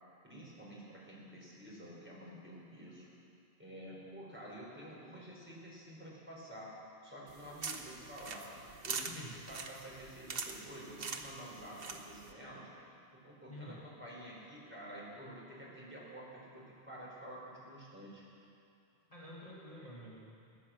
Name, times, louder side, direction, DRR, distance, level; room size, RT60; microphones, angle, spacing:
voice 1, 0.2-3.1 3.6-6.8 7.0-8.5 8.8-12.7 13.1-18.2, equal, 10° right, -6 dB, 4.2 m, -50 dB
sound 1, 7.3-12.3, right 4 dB, 65° right, 1.2 m, -44 dB
voice 2, 9.0-9.5 13.5-13.9 19.1-20.6, equal, 35° left, -5 dB, 1.6 m, -50 dB
17.0 x 9.7 x 7.6 m, 2.7 s
omnidirectional pair, 1.0 m